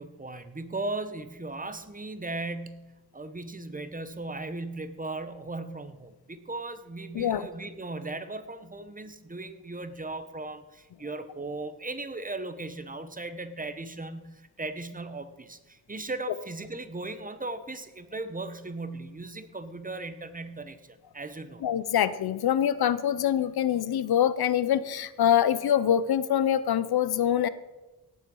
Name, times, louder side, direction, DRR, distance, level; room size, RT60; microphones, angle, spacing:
voice 1, 0.0-21.6, right 2 dB, 20° right, 10 dB, 1.0 m, -37 dB
voice 2, 7.1-7.5 21.6-27.5, left 10 dB, 80° left, 16 dB, 0.7 m, -24 dB
17.5 x 7.7 x 5.4 m, 1.1 s
wide cardioid pair, 100°, 37 cm